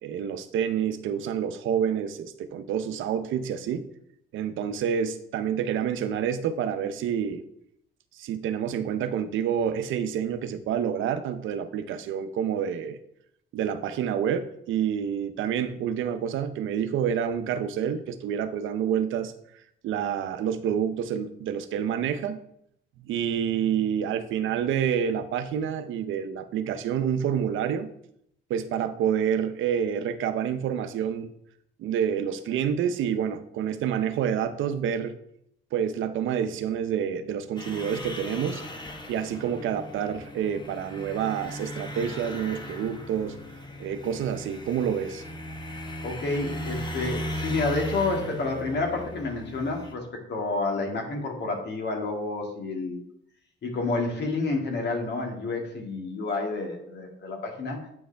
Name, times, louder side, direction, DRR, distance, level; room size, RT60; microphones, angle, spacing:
voice 1, 0.0-3.8 4.3-7.4 8.1-13.0 13.5-19.3 19.8-22.4 23.0-27.9 28.5-31.3 31.8-35.1 35.7-38.6 39.1-43.4 43.8-45.2, right 8 dB, 80° right, 11 dB, 0.7 m, -28 dB
sound 1, 37.6-49.9, equal, 20° left, 1.2 m, -37 dB
voice 2, 46.0-53.0 53.6-57.8, left 3 dB, 60° left, 2 dB, 2.1 m, -29 dB
8.9 x 5.4 x 3.4 m, 0.72 s
cardioid pair, 90°, 20 cm